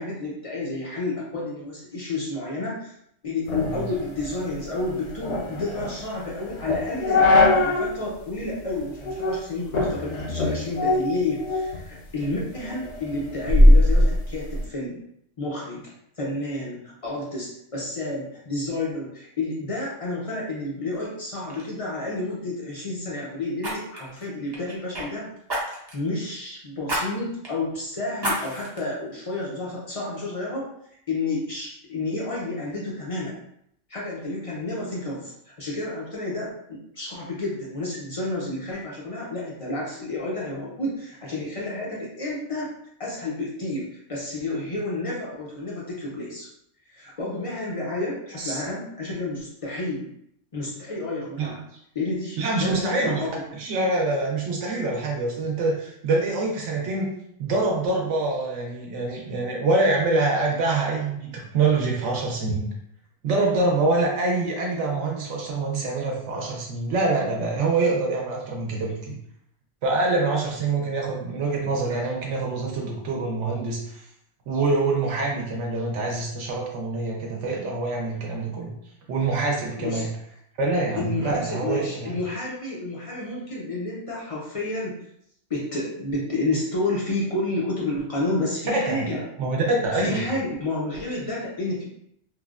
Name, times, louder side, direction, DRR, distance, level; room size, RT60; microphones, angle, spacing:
voice 1, 0.0-2.9 3.2-15.0 15.4-15.8 16.2-25.3 25.9-30.7 31.1-33.4 33.9-35.3 35.6-42.7 43.0-46.5 46.9-50.1 50.5-51.6 51.9-53.3 79.8-80.1 81.0-85.0 85.5-89.2 89.9-91.8, left 2 dB, 50° left, -4 dB, 0.4 m, -30 dB
sound 1, 3.5-7.9 8.3-8.4 9.0-9.4 9.7-11.8 12.2-14.6, left 1 dB, 70° left, 0.8 m, -21 dB
Fire, 20.9-21.1 21.5-21.7 23.6-25.1 25.5-26.0 26.8-27.0 27.4-27.5 28.2-28.8 29.3-29.4, right 1 dB, 30° right, 0.4 m, -30 dB
voice 2, 52.4-53.3 53.5-57.1 57.4-62.7 63.2-69.2 69.8-74.0 74.5-78.7 79.1-80.1 80.6-82.1 88.7-89.0 89.4-90.2, right 3 dB, 75° right, -1 dB, 0.9 m, -25 dB
3.0 x 2.1 x 2.3 m, 0.73 s
omnidirectional pair, 1.3 m